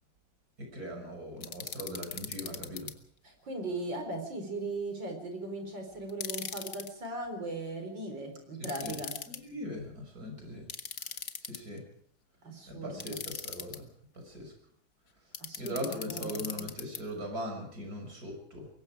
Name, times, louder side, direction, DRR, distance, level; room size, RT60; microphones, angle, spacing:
voice 1, 0.6-2.9 8.6-8.9 9.3-10.7 11.5-11.8 12.7-13.9 14.1-14.5 15.6-18.7, equal, 45° right, 2 dB, 6.7 m, -40 dB
sound 1, 1.4-2.9 6.1-6.9 8.6-9.4 10.7-11.8 13.0-13.8 15.3-17.0, left 7 dB, 45° left, 1.5 m, -39 dB
voice 2, 3.2-9.2 12.4-13.2 15.4-16.5, right 2 dB, 60° right, 5 dB, 5.1 m, -38 dB
24.5 x 22.0 x 5.0 m, 0.63 s
omnidirectional pair, 2.2 m